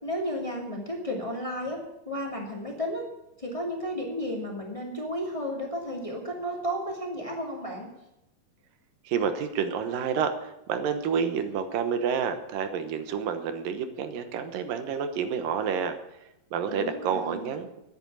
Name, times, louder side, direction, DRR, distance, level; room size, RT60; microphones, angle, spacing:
voice 1, 0.0-1.8 2.1-3.0 3.4-7.9 16.7-17.5, equal, 10° left, -1 dB, 2.1 m, -33 dB
voice 2, 9.1-16.0 16.5-17.8, right 7 dB, 85° right, 8 dB, 2.8 m, -29 dB
11.5 x 9.5 x 8.6 m, 0.87 s
omnidirectional pair, 3.9 m